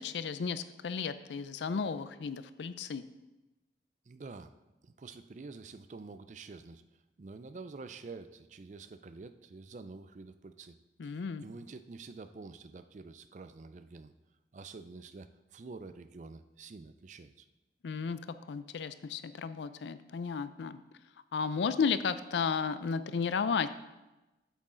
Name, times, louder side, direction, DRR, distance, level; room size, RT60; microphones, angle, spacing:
voice 1, 0.0-3.1 11.0-11.4 17.8-18.2 18.5-20.8 21.3-23.7, left 5 dB, 85° left, 13 dB, 0.4 m, -33 dB
voice 2, 4.1-4.5 4.8-6.8 7.2-10.8 11.0-14.1 14.5-17.5, right 3 dB, 45° right, 11 dB, 0.4 m, -48 dB
8.2 x 6.1 x 3.8 m, 1.0 s
head